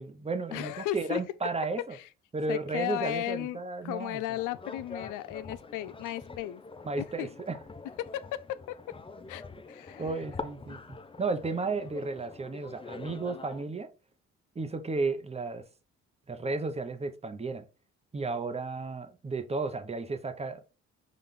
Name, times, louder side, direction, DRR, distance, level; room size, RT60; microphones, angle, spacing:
voice 1, 0.0-2.0 2.3-4.2 6.8-7.6 10.0-13.9 14.5-15.7 16.3-17.7 18.1-20.6, right 3 dB, 20° right, 0.8 m, -33 dB
voice 2, 0.5-1.2 2.5-6.6 7.0-7.3 8.0-8.8 9.3-9.4 9.7-10.2 10.7-10.8, left 14 dB, 90° left, 0.5 m, -35 dB
sound 1, 4.3-13.7, left 3 dB, 20° left, 0.5 m, -45 dB
5.9 x 2.4 x 3.6 m
cardioid pair, 90°, 30 cm